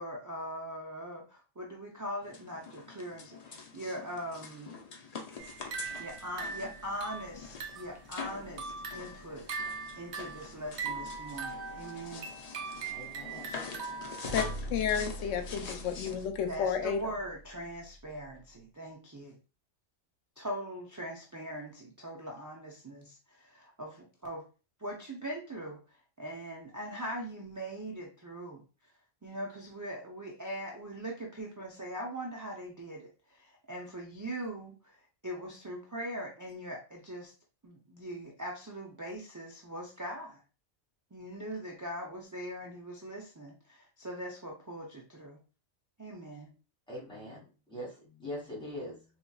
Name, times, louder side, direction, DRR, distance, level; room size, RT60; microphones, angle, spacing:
voice 1, 0.0-4.8 6.0-12.3 16.5-19.4 20.4-24.4 24.8-28.6 29.2-34.9 35.2-37.3 37.6-40.4 41.1-45.4 46.0-46.5, equal, 30° right, -2 dB, 0.3 m, -41 dB
sound 1, 2.2-16.3, left 5 dB, 45° left, 0.5 m, -45 dB
sound 2, 5.4-8.0 8.4-14.6, right 5 dB, 70° right, 1.0 m, -41 dB
voice 2, 12.9-13.5 14.2-14.7 46.9-49.1, left 1 dB, 5° left, -6 dB, 1.9 m, -43 dB
sound 3, 14.2-18.3, equal, 30° left, 0.9 m, -43 dB
voice 3, 14.7-17.0, left 7 dB, 90° left, 7 dB, 0.9 m, -31 dB
3.9 x 2.8 x 2.3 m, 0.34 s
omnidirectional pair, 1.2 m